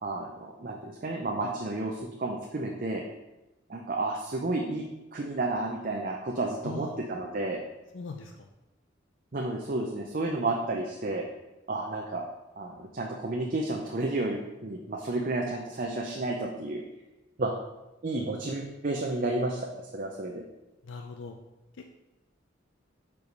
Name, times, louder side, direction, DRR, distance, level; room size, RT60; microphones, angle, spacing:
voice 1, 0.0-3.0 3.7-4.9 5.1-7.6 9.3-11.3 11.7-12.2 12.6-16.8 17.4-17.5 18.0-19.6 19.9-20.4, right 2 dB, 45° right, 1 dB, 0.6 m, -31 dB
voice 2, 6.6-6.9 7.9-8.5 20.8-21.3, left 4 dB, 75° left, 4 dB, 0.5 m, -40 dB
4.9 x 4.8 x 5.2 m, 1.0 s
head